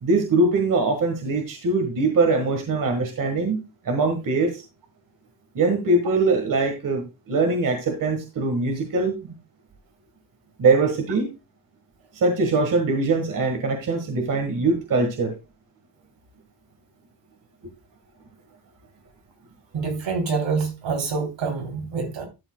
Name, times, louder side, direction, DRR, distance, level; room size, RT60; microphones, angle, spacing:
voice 1, 0.0-4.6 5.5-9.1 10.6-11.3 12.1-15.4, right 3 dB, 40° right, 1.6 m, -22 dB
voice 2, 19.7-22.3, right 4 dB, 75° right, 3.3 m, -26 dB
12.0 x 7.2 x 2.2 m
cardioid pair, 155°, 47 cm